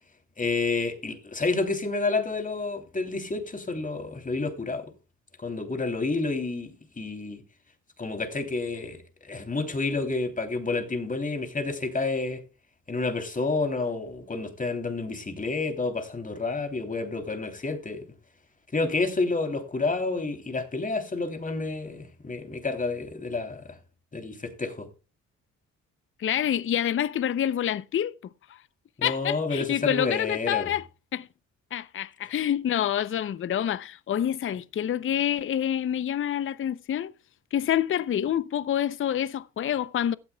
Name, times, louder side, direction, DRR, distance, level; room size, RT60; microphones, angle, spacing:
voice 1, 0.4-4.9 5.4-7.4 8.0-12.4 12.9-18.0 18.7-23.8 24.1-24.9 29.0-30.7, left 3 dB, 25° left, 3.2 m, -29 dB
voice 2, 26.2-28.1 29.0-30.9 31.1-31.3 31.7-37.1 37.5-40.2, left 10 dB, 45° left, 0.6 m, -27 dB
16.5 x 12.5 x 2.3 m
cardioid pair, 90°, 30 cm